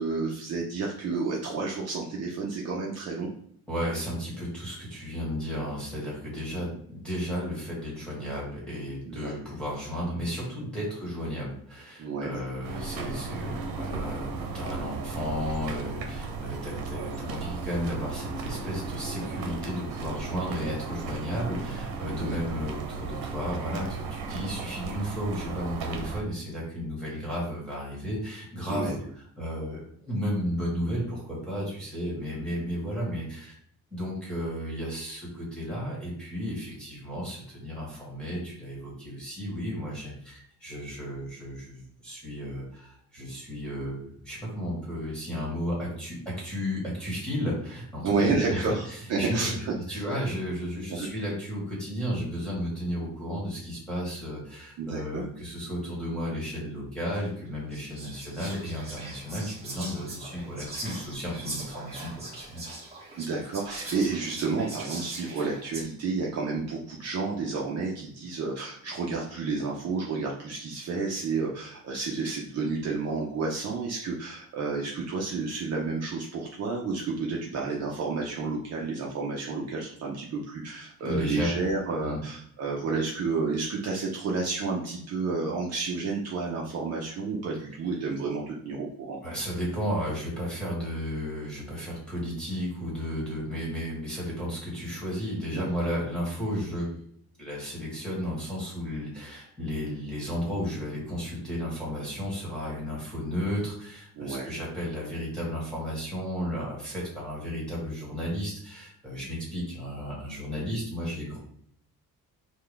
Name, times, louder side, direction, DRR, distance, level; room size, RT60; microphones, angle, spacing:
voice 1, 0.0-3.3 9.1-9.3 12.0-12.4 22.0-22.3 28.7-28.9 48.0-50.0 50.9-51.1 54.8-55.2 63.1-89.2 95.5-95.7 104.2-104.5 110.6-110.7, right 4 dB, 45° right, -2 dB, 0.7 m, -31 dB
voice 2, 3.7-29.0 29.4-33.5 33.9-62.6 81.0-81.5 82.0-82.2 89.2-97.0 97.4-111.4, equal, ahead, -5 dB, 1.6 m, -33 dB
sound 1, 12.6-26.2, right 4 dB, 70° right, 0.9 m, -35 dB
Whispering, 57.1-57.2 57.7-65.8, right 2 dB, 15° right, 1.4 m, -41 dB
5.8 x 2.3 x 3.4 m, 0.65 s
cardioid pair, 180°, 36 cm